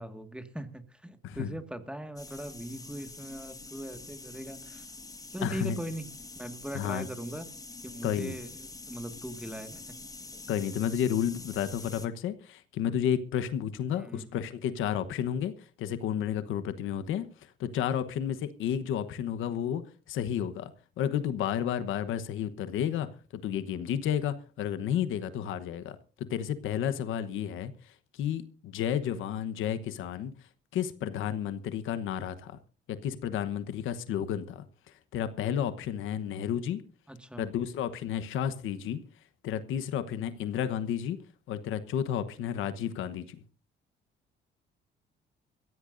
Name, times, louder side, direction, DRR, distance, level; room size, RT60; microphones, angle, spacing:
voice 1, 0.0-4.9 5.3-6.1 6.4-7.5 7.8-9.9 13.9-14.4 37.1-37.5, right 1 dB, 5° right, 1.8 m, -40 dB
voice 2, 1.2-1.6 5.4-5.8 6.7-7.1 8.0-8.3 10.5-15.5 15.8-17.3 17.6-19.8 20.1-20.7 21.0-30.3 30.7-32.6 32.9-34.6 35.1-36.8 37.4-39.0 39.4-41.2 41.5-43.4, left 9 dB, 85° left, 1.1 m, -31 dB
sound 1, 2.2-12.1, left 3 dB, 15° left, 1.6 m, -46 dB
23.0 x 15.5 x 2.6 m
cardioid pair, 90°, 20 cm